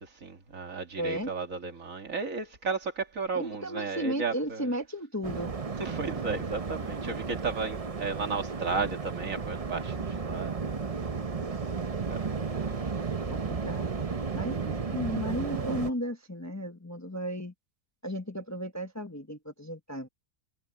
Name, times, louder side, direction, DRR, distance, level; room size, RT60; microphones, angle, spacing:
voice 1, 0.0-4.7 5.8-10.6 11.7-11.8 12.1-12.3, right 4 dB, 60° right, 2.3 m, -34 dB
voice 2, 1.0-1.3 3.3-5.5 11.5-11.6 13.3-13.9 14.3-17.5 18.0-20.1, equal, 10° left, 1.1 m, -34 dB
Waves surf, 5.2-15.9, right 5 dB, 30° right, 0.8 m, -33 dB
omnidirectional pair, 1.6 m